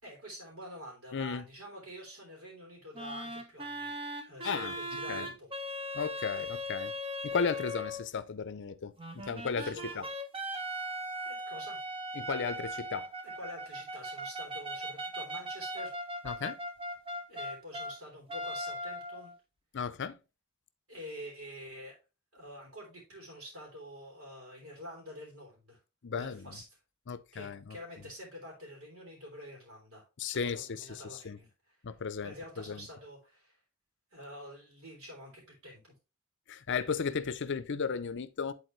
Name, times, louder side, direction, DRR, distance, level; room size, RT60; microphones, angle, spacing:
voice 1, 0.0-5.5 9.6-10.1 11.2-11.8 13.2-15.9 17.3-19.3 20.9-22.0 22.3-25.8 26.1-26.6 27.3-31.8 32.2-33.6 34.1-35.9, equal, 70° right, 3.2 m, -47 dB
voice 2, 1.1-1.4 4.4-4.8 5.1-5.3 5.9-6.9 7.2-10.0 12.2-13.1 16.2-16.6 19.7-20.2 26.0-26.6 27.1-27.8 30.2-31.4 31.8-32.8 36.5-38.5, left 5 dB, 55° left, 0.6 m, -35 dB
sound 1, 2.9-8.1 9.0-18.0 18.3-19.3, equal, 25° right, 0.9 m, -39 dB
10.5 x 4.1 x 3.1 m
head